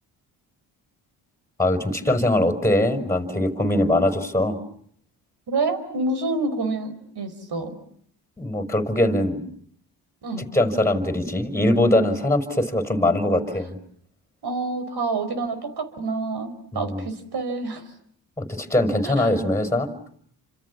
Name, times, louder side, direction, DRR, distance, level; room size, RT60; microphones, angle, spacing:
voice 1, 1.6-4.6 8.4-9.4 10.5-13.8 16.7-17.0 18.4-19.9, left 1 dB, 5° left, 8 dB, 5.8 m, -22 dB
voice 2, 5.5-7.8 10.2-10.5 14.4-17.9 19.0-19.3, right 3 dB, 55° right, 10 dB, 5.1 m, -28 dB
29.5 x 26.5 x 7.3 m, 0.63 s
supercardioid pair, 55°, 47 cm